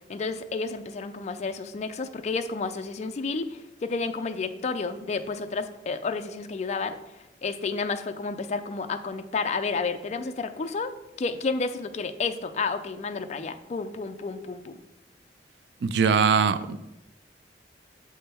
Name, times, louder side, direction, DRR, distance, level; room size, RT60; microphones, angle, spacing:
voice 1, 0.0-7.0 7.4-10.9 11.2-14.8, left 4 dB, 40° left, 8 dB, 0.4 m, -31 dB
voice 2, 15.8-16.8, right 6 dB, 65° right, 13 dB, 0.3 m, -21 dB
7.7 x 3.6 x 4.3 m, 0.95 s
head